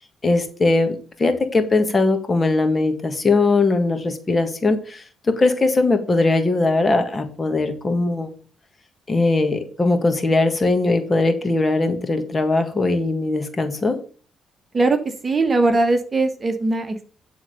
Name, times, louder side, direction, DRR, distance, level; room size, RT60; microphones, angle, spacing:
voice 1, 0.2-8.3 9.1-14.0, left 3 dB, 30° left, 6 dB, 1.7 m, -20 dB
voice 2, 14.7-17.0, right 3 dB, 30° right, 7 dB, 1.4 m, -20 dB
11.5 x 3.8 x 6.5 m, 0.41 s
cardioid pair, 90°, 0 cm